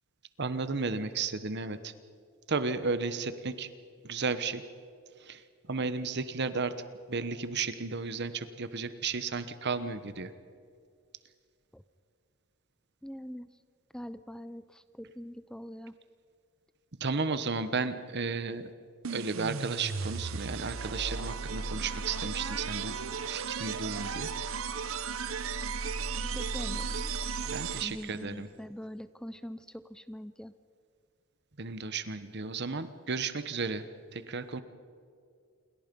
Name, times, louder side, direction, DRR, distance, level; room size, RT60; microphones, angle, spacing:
voice 1, 0.4-1.9 2.5-3.7 4.0-4.6 5.2-5.4 5.7-6.7 7.1-10.3 17.0-18.7 19.1-23.0 23.2-24.3 27.4-28.5 31.6-33.8 34.1-34.6, right 4 dB, 55° right, 12 dB, 1.1 m, -33 dB
voice 2, 13.0-13.5 13.9-15.9 26.2-27.1 27.8-30.5, equal, 5° left, 13 dB, 0.5 m, -43 dB
sound 1, 19.0-28.2, right 5 dB, 80° right, 0.9 m, -35 dB
28.5 x 22.5 x 5.4 m, 2.2 s
head